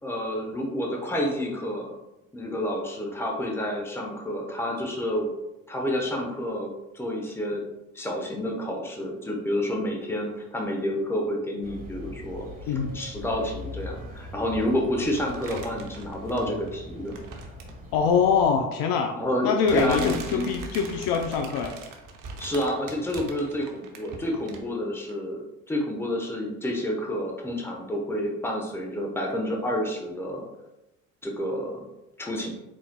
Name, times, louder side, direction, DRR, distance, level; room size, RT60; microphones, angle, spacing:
voice 1, 0.0-1.9 2.3-5.3 5.7-6.7 6.9-7.6 7.9-17.2 19.1-20.6 22.4-30.4 31.2-31.8 32.2-32.5, equal, 5° left, 0 dB, 0.9 m, -29 dB
sound 1, 11.6-18.5, left 1 dB, 20° right, 1.4 m, -41 dB
sound 2, 15.2-16.7 17.1-17.8 18.8-19.0 19.6-24.8 25.1-25.2, right 4 dB, 50° right, 0.8 m, -40 dB
voice 2, 17.9-19.1 19.4-21.7, left 6 dB, 60° left, 4 dB, 0.6 m, -24 dB
4.4 x 4.0 x 2.2 m, 0.93 s
hypercardioid pair, 65°, 40 cm